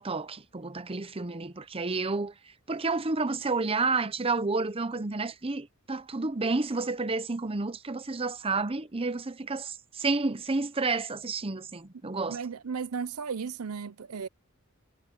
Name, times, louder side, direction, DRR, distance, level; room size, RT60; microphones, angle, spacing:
voice 1, 0.0-12.4, right 3 dB, 25° right, 0.8 m, -30 dB
voice 2, 12.3-14.3, right 6 dB, 80° right, 0.6 m, -35 dB
head